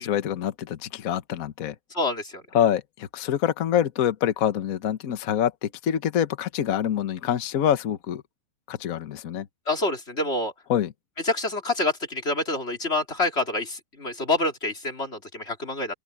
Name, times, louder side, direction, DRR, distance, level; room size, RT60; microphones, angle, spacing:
voice 1, 0.0-1.7 2.5-8.2 8.7-9.5 10.7-10.9, left 10 dB, 50° left, 1.3 m, -25 dB
voice 2, 1.9-2.4 9.7-10.5 11.3-15.9, left 2 dB, 30° left, 3.6 m, -27 dB
omnidirectional pair, 2.3 m